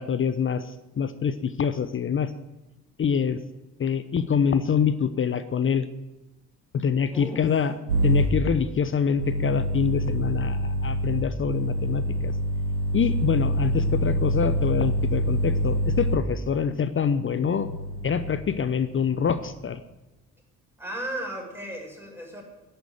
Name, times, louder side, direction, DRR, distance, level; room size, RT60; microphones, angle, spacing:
voice 1, 0.0-2.3 3.0-3.4 3.8-5.9 6.7-7.7 8.0-12.3 12.9-17.7 18.0-19.8, left 7 dB, 30° left, 12 dB, 0.8 m, -25 dB
voice 2, 7.1-7.6 20.8-22.4, right 1 dB, 5° right, -1 dB, 6.8 m, -35 dB
sound 1, 7.9-8.3 9.2-16.2 17.2-18.4 18.9-19.3, equal, 85° right, 1.2 m, -26 dB
11.0 x 9.3 x 9.3 m, 1.0 s
figure-of-eight pair, 50°, 44 cm